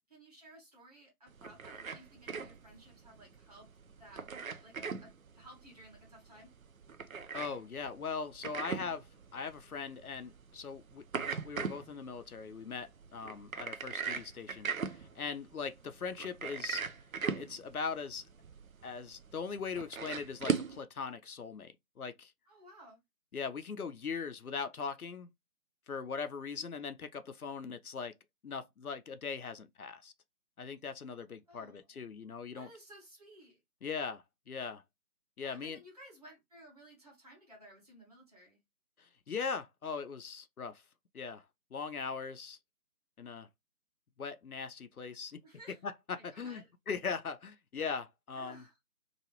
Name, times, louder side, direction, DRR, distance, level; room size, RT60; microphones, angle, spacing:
voice 1, 0.1-3.7 4.0-4.2 4.6-6.5 22.5-23.0 26.6-26.7 31.5-31.9 32.5-33.6 35.4-38.6 45.4-45.8 46.2-46.7 48.4-48.7, right 1 dB, 25° right, 1.2 m, -56 dB
sound 1, 1.3-20.8, right 6 dB, 65° right, 0.5 m, -40 dB
voice 2, 7.3-11.0 11.4-16.8 17.3-18.3 18.8-22.3 23.3-25.3 25.9-28.1 28.4-30.1 30.6-32.7 33.8-34.8 35.4-35.8 39.0-40.8 41.1-41.5 41.7-42.6 43.2-43.5 44.2-45.4 45.8-48.6, left 5 dB, 70° left, 0.5 m, -40 dB
2.9 x 2.3 x 2.9 m
figure-of-eight pair, 155°, 45 cm